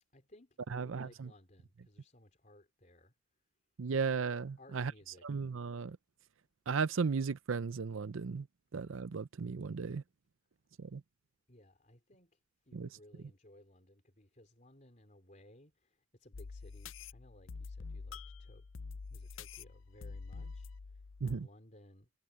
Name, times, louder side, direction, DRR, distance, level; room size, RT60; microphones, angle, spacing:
voice 1, 0.1-3.2 4.6-5.4 11.5-18.7 19.1-22.1, left 1 dB, 40° left, 3.9 m, -60 dB
voice 2, 0.7-1.3 3.8-4.9 5.2-6.0 6.7-8.5 8.7-10.0 10.8-11.0 12.7-12.9 21.2-21.5, right 5 dB, 85° right, 0.5 m, -35 dB
sound 1, 16.3-21.4, left 4 dB, 75° left, 0.6 m, -46 dB
head